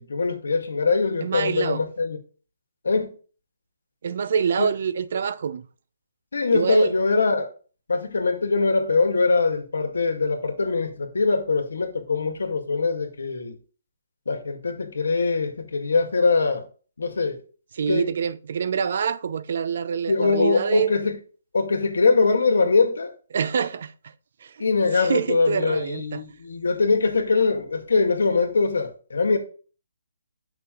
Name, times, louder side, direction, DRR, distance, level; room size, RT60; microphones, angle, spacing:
voice 1, 0.0-2.2 2.8-3.1 4.6-4.7 6.3-7.5 7.9-13.6 14.3-16.7 17.0-17.4 17.9-18.1 20.1-21.2 21.5-23.1 24.6-29.4, left 4 dB, 80° left, 1.9 m, -22 dB
voice 2, 1.2-1.8 4.0-5.7 6.5-6.9 17.7-20.9 23.3-24.1 24.4-24.7 24.9-26.2, right 6 dB, 55° right, 0.6 m, -26 dB
7.5 x 6.0 x 3.8 m
hypercardioid pair, 150°, 0 cm